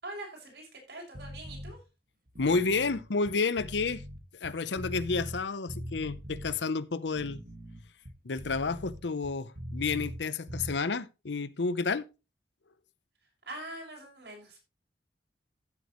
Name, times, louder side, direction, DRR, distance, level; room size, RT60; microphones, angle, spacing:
voice 1, 0.0-1.8 13.5-14.6, right 1 dB, 70° right, 6.1 m, -43 dB
sound 1, 1.1-1.7 2.3-5.4 5.7-6.5 7.1-10.2 10.5-10.7, equal, 55° right, 1.9 m, -42 dB
voice 2, 2.4-4.0 4.4-7.4 8.2-12.1, left 4 dB, 90° left, 0.8 m, -30 dB
14.5 x 8.1 x 3.1 m
head